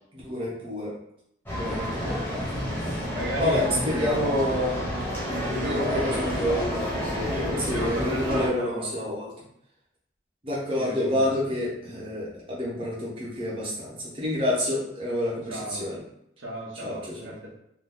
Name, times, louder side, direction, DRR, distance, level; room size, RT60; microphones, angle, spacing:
voice 1, 0.1-0.9 1.6-2.4 3.4-4.7 5.6-6.8 7.7-9.3 10.4-16.0 16.8-17.3, left 1 dB, 30° right, -6 dB, 0.9 m, -28 dB
sound 1, 1.5-8.5, left 1 dB, 10° left, 0.7 m, -30 dB
voice 2, 3.2-4.9 5.3-6.6 7.2-8.9 10.8-11.5 15.5-15.9 16.4-17.6, right 1 dB, 80° right, -3 dB, 0.8 m, -34 dB
2.7 x 2.2 x 3.7 m, 0.76 s
head